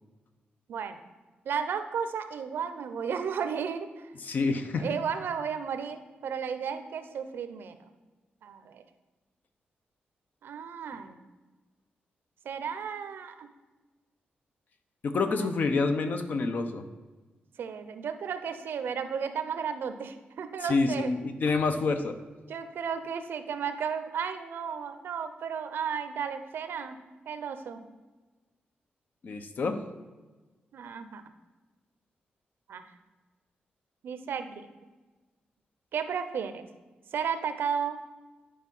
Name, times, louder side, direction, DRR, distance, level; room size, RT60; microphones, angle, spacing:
voice 1, 1.4-4.1 4.8-7.8 8.4-8.8 10.4-11.2 12.4-13.5 15.4-15.5 17.6-21.1 22.5-27.0 27.3-27.9 30.7-31.2 32.7-32.8 34.0-34.7 35.9-36.7 37.1-38.0, right 7 dB, 80° right, 10 dB, 0.7 m, -34 dB
voice 2, 4.2-5.0 15.0-16.9 20.6-22.2 29.2-29.8, left 3 dB, 55° left, 8 dB, 0.8 m, -28 dB
10.0 x 4.8 x 5.5 m, 1.2 s
wide cardioid pair, 130°, 4 cm